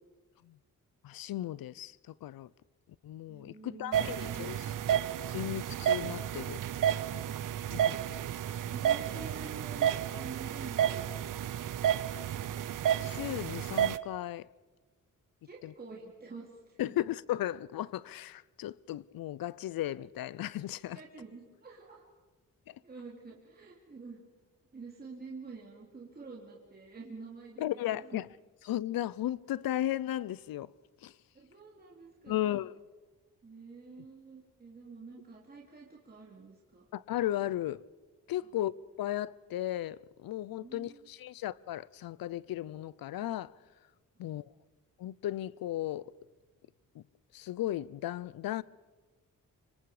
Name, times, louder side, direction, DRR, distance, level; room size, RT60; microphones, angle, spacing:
voice 1, 1.0-2.5 3.0-6.6 7.7-8.0 12.9-14.5 15.6-15.7 16.8-21.0 22.7-22.8 27.6-28.3 28.6-30.7 31.0-31.2 32.3-32.7 36.9-37.8 38.3-38.7 39.0-43.5 44.2-44.5 45.0-46.1 46.9-47.0 47.3-48.6, left 13 dB, 80° left, 0.6 m, -35 dB
voice 2, 3.3-4.8 6.4-6.8 8.6-12.2 15.4-16.9 20.9-22.0 22.8-24.2 24.7-27.7 27.9-28.2 31.3-32.6 33.4-36.8 40.6-41.0 44.2-44.3, right 4 dB, 25° right, 2.6 m, -48 dB
sound 1, 3.9-14.0, right 10 dB, 65° right, 0.7 m, -31 dB
25.5 x 24.5 x 4.9 m
wide cardioid pair, 165°, 35 cm